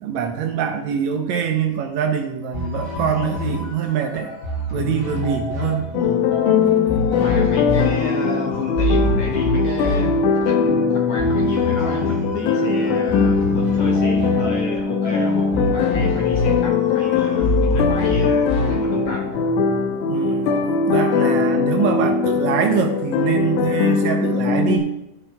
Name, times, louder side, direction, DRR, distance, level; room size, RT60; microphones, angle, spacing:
voice 1, 0.0-4.3 4.7-6.3 20.1-20.6 20.9-24.9, right 7 dB, 80° right, 5 dB, 1.9 m, -24 dB
sound 1, 2.5-19.8, left 1 dB, 50° left, 1.7 m, -26 dB
sound 2, 5.9-24.8, left 5 dB, 90° left, 2.1 m, -20 dB
voice 2, 7.2-10.2 10.4-19.3, left 3 dB, 70° left, -1 dB, 1.3 m, -30 dB
13.5 x 5.9 x 2.3 m, 0.85 s
omnidirectional pair, 3.5 m